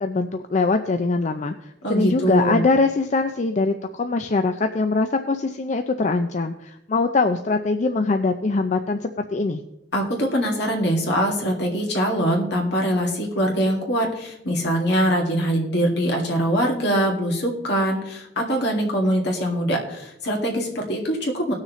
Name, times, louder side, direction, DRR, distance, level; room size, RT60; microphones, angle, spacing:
voice 1, 0.0-1.6 1.9-9.6, left 3 dB, 40° left, 7 dB, 0.5 m, -22 dB
voice 2, 1.8-2.6 9.9-21.5, equal, 65° left, -1 dB, 2.2 m, -23 dB
18.5 x 6.4 x 3.1 m, 0.85 s
head